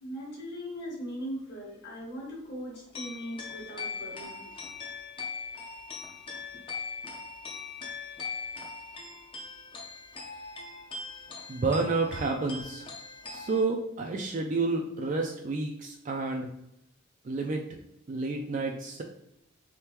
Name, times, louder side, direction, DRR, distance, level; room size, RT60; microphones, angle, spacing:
voice 1, 0.0-4.5, equal, 50° left, -3 dB, 1.5 m, -39 dB
sound 1, 2.5-13.6, left 4 dB, 25° left, 0.6 m, -41 dB
voice 2, 11.5-12.9 13.3-16.5 17.2-17.7 18.1-19.0, right 3 dB, 35° right, 2 dB, 0.3 m, -30 dB
3.6 x 3.2 x 2.9 m, 0.79 s
head